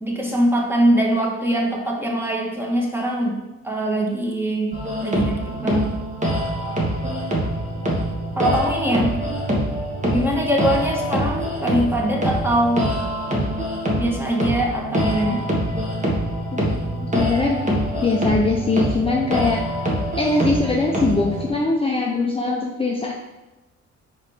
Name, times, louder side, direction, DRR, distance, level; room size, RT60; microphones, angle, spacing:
voice 1, 0.0-3.4 3.6-5.9 8.3-9.1 10.0-12.9 14.0-15.4, right 1 dB, 5° right, -2 dB, 1.6 m, -22 dB
sound 1, 4.7-21.5, equal, 25° right, 1.8 m, -24 dB
voice 2, 16.5-17.7 18.0-19.6 20.2-23.1, left 3 dB, 20° left, -1 dB, 0.8 m, -22 dB
4.8 x 4.6 x 5.1 m, 1.1 s
cardioid pair, 90°, 30 cm